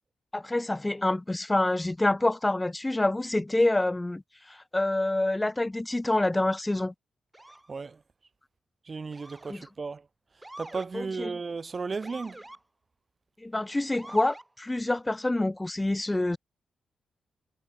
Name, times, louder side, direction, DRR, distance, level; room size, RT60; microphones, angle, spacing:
voice 1, 0.3-6.9 9.5-9.6 10.9-11.4 13.4-16.4, left 2 dB, 15° left, 1.2 m, -27 dB
Motor vehicle (road) / Siren, 7.3-7.7 9.1-9.7 10.4-10.9 12.0-12.6 13.9-14.5, right 1 dB, 15° right, 5.2 m, -46 dB
voice 2, 7.7-8.0 8.9-10.0 10.6-12.4, right 4 dB, 40° right, 2.4 m, -35 dB
cardioid pair, 75°, 0 cm